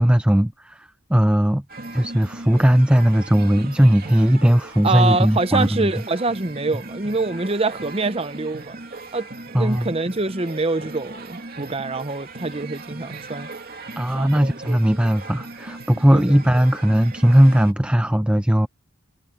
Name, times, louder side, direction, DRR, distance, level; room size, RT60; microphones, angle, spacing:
voice 1, 0.0-1.6 1.9-5.9 9.5-9.9 14.0-18.7, equal, 5° right, 0.5 m, -18 dB
sound 1, 1.7-17.7, right 2 dB, 45° right, 2.7 m, -38 dB
voice 2, 4.8-8.8 9.1-13.5 14.1-14.8 16.1-16.2, right 3 dB, 25° right, 0.8 m, -25 dB
head